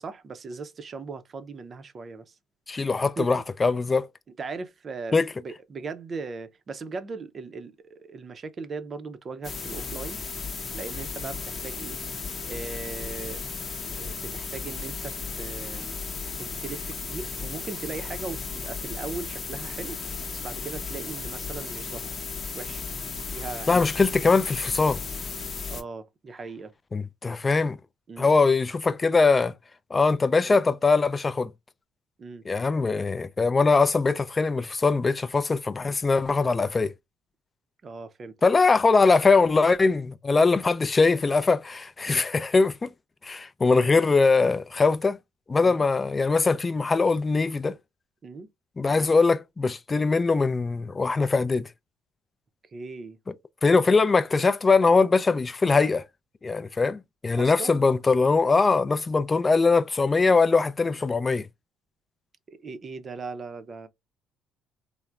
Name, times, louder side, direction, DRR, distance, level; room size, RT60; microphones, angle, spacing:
voice 1, 0.0-2.4 3.2-3.3 4.4-10.2 10.7-12.0 12.5-13.4 13.9-16.0 16.4-20.0 20.3-22.0 22.5-22.8 23.3-23.9 25.7-26.7 28.1-28.3 30.4-30.6 32.2-32.5 37.8-38.4 42.1-42.2 45.6-45.8 48.2-48.5 48.9-49.1 52.7-53.2 57.3-57.8 60.8-61.0 62.5-63.9, right 4 dB, 40° right, 0.5 m, -38 dB
voice 2, 2.7-4.1 5.1-5.3 23.7-25.0 26.9-27.8 28.2-29.5 29.9-31.5 32.5-36.9 38.4-42.9 43.2-45.2 45.5-47.8 48.8-51.7 53.6-56.0 56.4-61.5, left 4 dB, 25° left, 0.3 m, -22 dB
sound 1, 9.4-25.8, left 5 dB, 40° left, 0.7 m, -35 dB
3.2 x 2.0 x 2.3 m
supercardioid pair, 75°, 0 cm